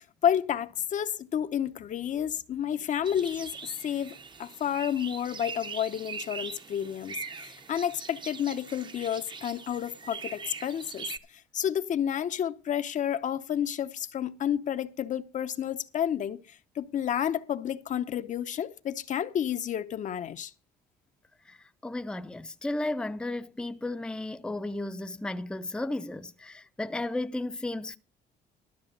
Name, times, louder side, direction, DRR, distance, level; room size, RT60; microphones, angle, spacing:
voice 1, 0.2-11.1 11.5-20.5, left 9 dB, 50° left, 0.7 m, -30 dB
sound 1, 3.0-11.2, right 5 dB, 25° right, 0.8 m, -42 dB
voice 2, 21.8-28.0, left 2 dB, 5° left, 0.6 m, -34 dB
13.0 x 6.3 x 6.5 m
cardioid pair, 110°, 17 cm